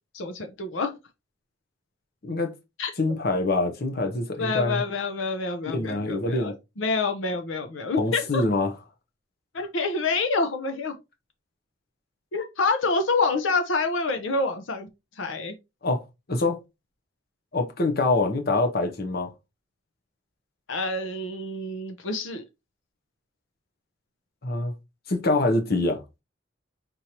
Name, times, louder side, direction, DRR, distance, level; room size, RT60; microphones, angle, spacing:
voice 1, 0.1-1.0 2.8-2.9 4.4-8.4 9.5-11.0 12.3-14.9 15.2-15.6 20.7-22.4, left 3 dB, 85° left, 0.7 m, -27 dB
voice 2, 3.0-4.8 5.6-6.5 8.0-8.8 15.8-16.0 16.3-16.6 17.5-19.3 24.4-24.7 25.1-26.0, left 2 dB, 55° left, 0.9 m, -25 dB
5.3 x 3.1 x 2.8 m
head